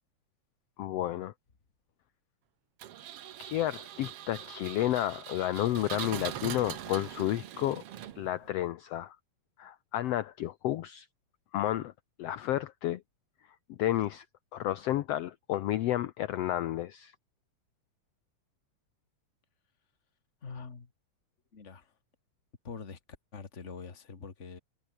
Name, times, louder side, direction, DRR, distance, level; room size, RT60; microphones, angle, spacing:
voice 1, 0.8-1.3 3.4-7.8 8.2-9.2 9.6-11.1 11.5-11.9 12.2-13.0 13.7-14.3 14.5-17.1, left 13 dB, 70° left, 1.7 m, -31 dB
Engine, 2.8-8.5, right 11 dB, 60° right, 2.0 m, -42 dB
voice 2, 20.4-20.9 21.5-21.9 22.6-23.0 23.3-24.6, left 5 dB, 25° left, 2.1 m, -44 dB
omnidirectional pair, 3.3 m